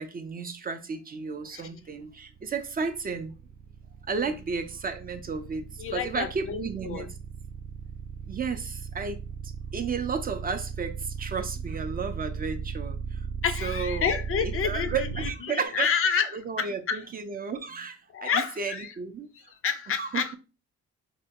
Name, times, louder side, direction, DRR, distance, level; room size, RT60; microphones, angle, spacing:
voice 1, 0.0-3.3 4.1-7.1 8.3-13.3 13.6-14.1 14.4-15.9 16.3-19.5 20.0-20.4, right 5 dB, 30° right, 0.4 m, -33 dB
sound 1, 2.0-15.3, right 5 dB, 80° right, 0.5 m, -36 dB
voice 2, 5.8-7.1 13.4-17.1 18.1-18.9 19.6-20.4, left 7 dB, 45° left, 0.4 m, -29 dB
3.3 x 2.2 x 2.7 m
cardioid pair, 90°, 30 cm